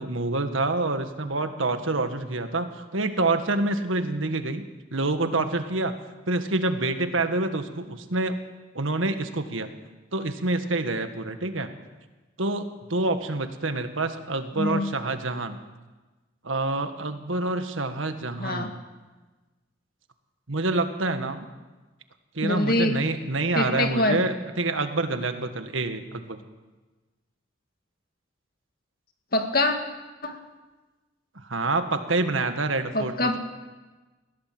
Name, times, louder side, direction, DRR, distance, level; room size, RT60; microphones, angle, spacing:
voice 1, 0.0-4.6 4.9-5.9 6.3-8.3 8.7-9.7 10.1-11.7 12.4-15.6 16.4-18.7 20.5-21.5 22.3-26.4 31.3-33.4, right 2 dB, 85° right, 8 dB, 1.7 m, -27 dB
voice 2, 14.6-14.9 18.4-18.7 22.4-22.9 23.5-24.3 29.3-29.8 30.2-30.4 32.9-33.4, left 2 dB, 50° left, 5 dB, 2.2 m, -24 dB
20.5 x 16.5 x 7.8 m, 1.2 s
head